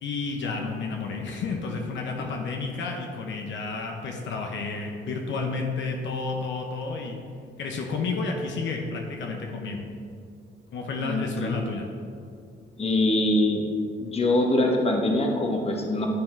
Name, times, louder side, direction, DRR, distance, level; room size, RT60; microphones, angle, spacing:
voice 1, 0.0-7.2 7.6-9.8 10.7-11.9, left 4 dB, 70° left, 2 dB, 0.9 m, -31 dB
voice 2, 11.0-11.5 12.8-13.6 14.0-16.1, left 1 dB, 30° left, 1 dB, 1.1 m, -24 dB
10.5 x 3.7 x 4.5 m, 2.4 s
cardioid pair, 90°, 20 cm